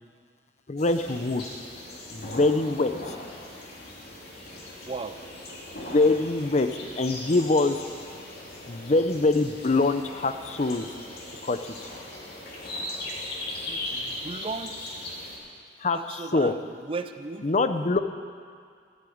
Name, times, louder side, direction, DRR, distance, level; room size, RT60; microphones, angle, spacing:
voice 1, 0.7-1.4 2.1-3.2 5.9-6.7 7.0-7.8 8.7-10.9 11.4-11.9 15.8-16.5 17.4-18.0, left 3 dB, 40° left, 9 dB, 0.6 m, -24 dB
sound 1, 0.8-15.4, left 1 dB, 60° left, 2.5 m, -39 dB
voice 2, 4.8-5.2 13.5-14.9 15.9-17.5, right 3 dB, 30° right, 9 dB, 0.5 m, -36 dB
14.5 x 7.7 x 8.5 m, 2.1 s
head